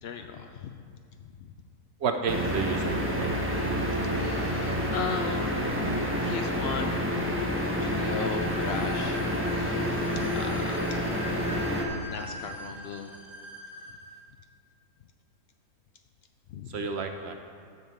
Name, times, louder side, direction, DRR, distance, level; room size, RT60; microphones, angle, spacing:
voice 1, 0.0-0.8 1.2-1.5 4.1-11.0 12.0-13.1 13.9-14.0 16.5-16.9, left 6 dB, 85° left, 5 dB, 0.5 m, -38 dB
voice 2, 2.0-3.4 16.7-17.3, right 5 dB, 65° right, 5 dB, 0.7 m, -31 dB
sound 1, 2.2-14.2, equal, 40° right, 1.2 m, -45 dB
sound 2, 2.3-11.8, equal, 10° right, 0.9 m, -28 dB
9.7 x 5.3 x 7.2 m, 2.2 s
omnidirectional pair, 1.6 m